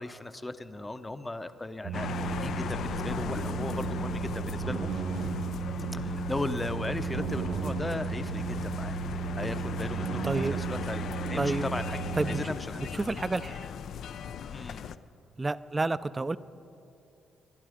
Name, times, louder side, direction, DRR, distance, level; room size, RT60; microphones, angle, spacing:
voice 1, 0.0-4.9 5.9-9.0 9.3-12.8 14.5-14.8, left 2 dB, 15° left, 11 dB, 0.7 m, -37 dB
sound 1, 1.8-12.5, right 7 dB, 60° right, 0.7 m, -34 dB
sound 2, 1.9-15.0, left 8 dB, 65° left, 0.4 m, -37 dB
voice 2, 10.2-10.6 11.4-11.7 12.2-13.7 15.4-16.4, right 3 dB, 20° right, 15 dB, 0.4 m, -30 dB
21.0 x 11.5 x 5.0 m, 2.7 s
cardioid pair, 90°, 0 cm